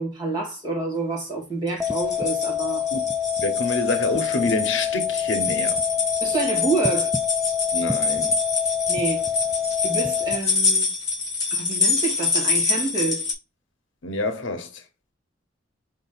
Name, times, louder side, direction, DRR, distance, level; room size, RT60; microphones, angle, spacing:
voice 1, 0.0-2.9 6.2-7.1 8.9-9.2 9.8-10.9 11.5-13.2, right 3 dB, 25° right, 2.3 m, -28 dB
sound 1, 1.7-13.3, left 4 dB, 20° left, 2.3 m, -26 dB
sound 2, 1.8-10.4, left 8 dB, 5° right, 0.3 m, -26 dB
voice 2, 3.4-5.8 7.7-8.4 14.0-14.8, left 2 dB, 90° left, 0.9 m, -27 dB
5.0 x 2.6 x 4.0 m
head